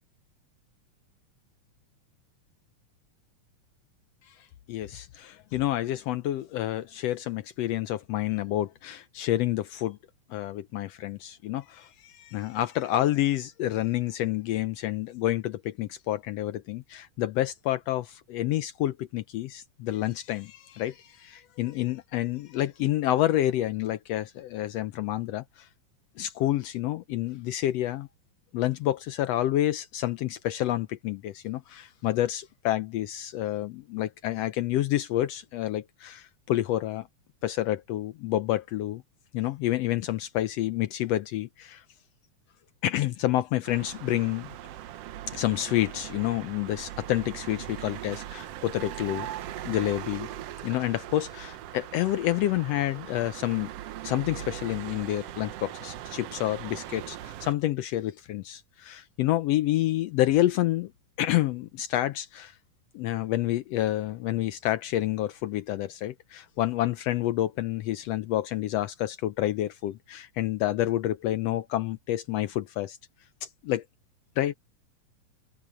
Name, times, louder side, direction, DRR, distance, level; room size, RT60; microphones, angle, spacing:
voice 1, 4.7-10.0 10.3-25.7 26.2-28.1 28.5-37.1 37.4-39.0 39.3-41.8 42.8-44.5 45.3-49.3 49.6-50.3 50.6-53.7 54.0-60.9 61.2-62.5 62.9-73.0 73.4-73.8 74.4-74.5, left 14 dB, 85° left, 1.4 m, -28 dB
sound 1, 43.6-57.5, right 12 dB, 75° right, 1.5 m, -40 dB
omnidirectional pair, 3.7 m